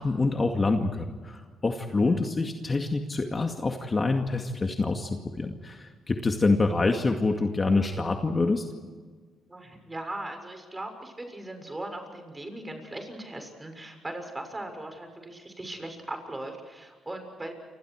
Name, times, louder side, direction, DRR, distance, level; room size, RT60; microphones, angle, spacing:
voice 1, 0.0-8.6, left 3 dB, 30° left, 4 dB, 2.2 m, -26 dB
voice 2, 1.8-2.3 9.5-17.5, right 1 dB, 15° right, 5 dB, 6.8 m, -39 dB
29.5 x 26.5 x 4.8 m, 1.5 s
cardioid pair, 90°, 0 cm